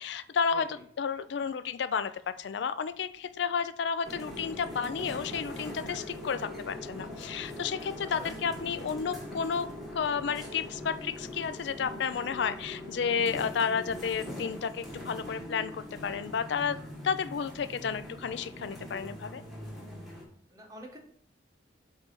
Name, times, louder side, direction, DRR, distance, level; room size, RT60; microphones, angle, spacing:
voice 1, 0.0-19.4, left 6 dB, 65° left, 13 dB, 0.4 m, -32 dB
sound 1, 4.0-20.2, left 1 dB, ahead, 1.6 m, -42 dB
voice 2, 8.0-8.4 20.5-21.0, equal, 20° right, 1 dB, 1.1 m, -46 dB
8.0 x 2.7 x 5.3 m, 0.64 s
head